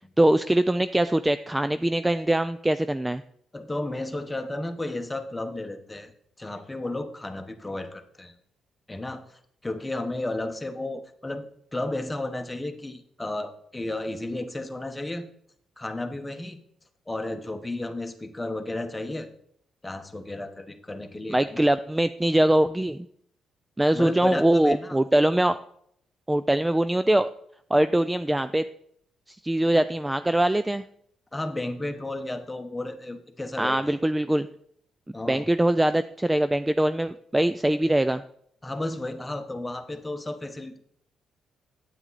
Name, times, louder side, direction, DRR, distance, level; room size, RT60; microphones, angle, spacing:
voice 1, 0.2-3.2 21.3-23.1 23.8-25.6 26.3-27.3 27.7-28.6 29.4-30.8 33.6-34.5 35.3-38.2, right 1 dB, 10° right, 12 dB, 0.3 m, -22 dB
voice 2, 3.5-6.1 6.4-8.3 8.9-11.5 11.7-15.2 15.8-16.6 17.1-19.3 19.8-21.7 23.9-25.0 31.3-34.0 35.1-35.5 38.6-40.8, left 2 dB, 15° left, 6 dB, 1.1 m, -33 dB
9.0 x 8.4 x 4.1 m, 0.67 s
cardioid pair, 90°, 0 cm